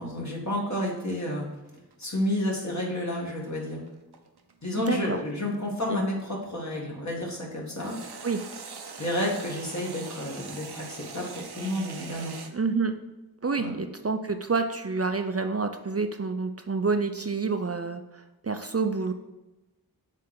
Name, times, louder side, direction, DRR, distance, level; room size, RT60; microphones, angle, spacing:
voice 1, 0.0-1.5 2.0-3.8 4.6-8.0 9.0-12.3 13.6-13.7, left 1 dB, 45° left, -3 dB, 2.0 m, -30 dB
sound 1, 1.5-6.7 7.8-12.5, right 5 dB, 85° right, 0.7 m, -43 dB
voice 2, 4.9-5.2 5.9-6.0 8.2-8.7 12.5-12.9 13.4-19.1, right 4 dB, 40° right, 6 dB, 0.5 m, -28 dB
7.3 x 3.3 x 5.9 m, 1.0 s
wide cardioid pair, 50°, 38 cm